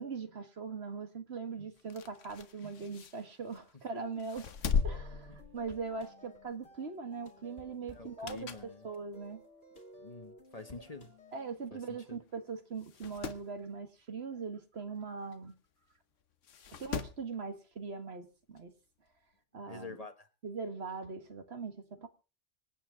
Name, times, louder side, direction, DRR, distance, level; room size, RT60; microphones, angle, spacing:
voice 1, 0.0-4.4 4.8-8.5 8.8-9.4 11.3-15.5 16.8-18.7 19.5-20.0 20.4-22.1, right 5 dB, 60° right, 1.8 m, -41 dB
sound 1, 1.8-3.7 4.2-6.1 6.4-6.7 7.9-8.8 9.2-9.3 10.2-10.3 10.6-10.7 10.8-10.9 11.8-12.0 12.3-12.4 12.8-13.5 15.3-15.4 16.4-17.3 18.6-18.7, left 6 dB, 85° left, 1.4 m, -38 dB
sound 2, 4.6-11.7, equal, 55° left, 2.2 m, -56 dB
voice 2, 7.9-8.9 10.0-11.1 11.7-12.2 19.6-20.3, left 3 dB, 35° left, 1.3 m, -48 dB
25.5 x 8.6 x 3.7 m
omnidirectional pair, 1.2 m